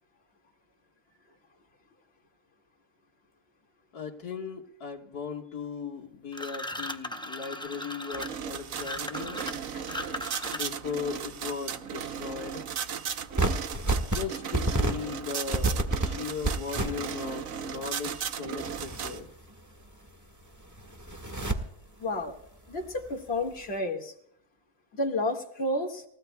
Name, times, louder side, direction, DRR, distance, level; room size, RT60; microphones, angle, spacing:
voice 1, 3.9-9.4 10.5-12.6 14.0-19.3, left 6 dB, 80° left, 0 dB, 2.2 m, -37 dB
sound 1, 6.3-10.9, left 1 dB, 5° left, 0.3 m, -37 dB
sound 2, 8.1-19.2, right 8 dB, 65° right, 1.2 m, -36 dB
sound 3, 13.3-14.2 14.5-14.9 15.5-16.1 16.4-17.4 17.7-17.8 18.6-19.8 20.1-20.2 20.5-21.6 22.8-23.2, right 2 dB, 10° right, 1.4 m, -29 dB
voice 2, 22.0-22.3 22.7-24.1 24.9-26.0, left 1 dB, 40° left, 0 dB, 2.4 m, -31 dB
28.5 x 16.0 x 2.3 m, 0.69 s
omnidirectional pair, 1.6 m